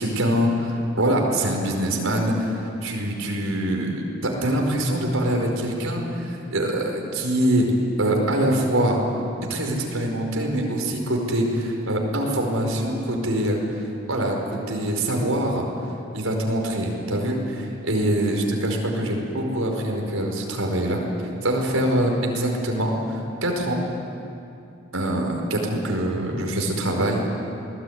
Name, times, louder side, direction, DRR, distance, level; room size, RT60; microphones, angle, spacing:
voice 1, 0.0-7.7 8.0-9.0 9.5-13.6 14.1-15.6 16.1-21.0 21.4-23.8 24.9-27.3, right 1 dB, 85° right, 1 dB, 5.1 m, -24 dB
28.0 x 19.5 x 9.6 m, 2.8 s
head